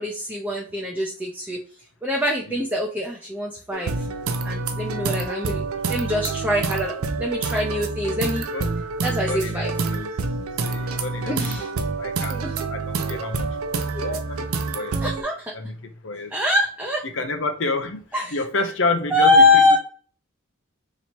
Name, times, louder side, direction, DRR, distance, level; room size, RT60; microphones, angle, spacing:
voice 1, 0.0-1.6 2.0-3.9 4.4-5.6 5.9-8.4 9.0-9.7 10.9-11.0 11.3-11.7 12.3-12.5 14.0-14.2 15.0-15.5 16.3-17.0 18.1-18.3 19.1-19.8, left 2 dB, 10° right, 0.5 m, -23 dB
sound 1, 3.7-15.2, right 4 dB, 90° right, 0.5 m, -27 dB
voice 2, 9.3-10.1 10.6-11.7 12.0-12.4 12.7-14.4 14.7-16.3 17.0-18.0 18.3-19.8, left 3 dB, 60° left, 0.6 m, -29 dB
3.0 x 2.8 x 4.3 m
head